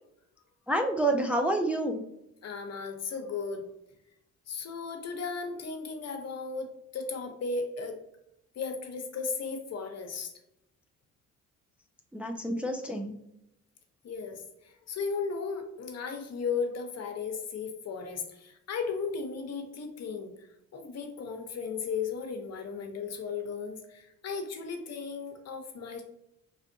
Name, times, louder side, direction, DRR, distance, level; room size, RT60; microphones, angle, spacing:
voice 1, 0.7-2.0 12.1-13.2, right 1 dB, 5° right, 3 dB, 0.4 m, -28 dB
voice 2, 2.4-3.6 4.5-8.0 8.6-10.3 14.0-20.3 20.7-26.0, left 5 dB, 55° left, 5 dB, 0.9 m, -35 dB
4.1 x 3.5 x 2.6 m, 0.83 s
cardioid pair, 90°, 30 cm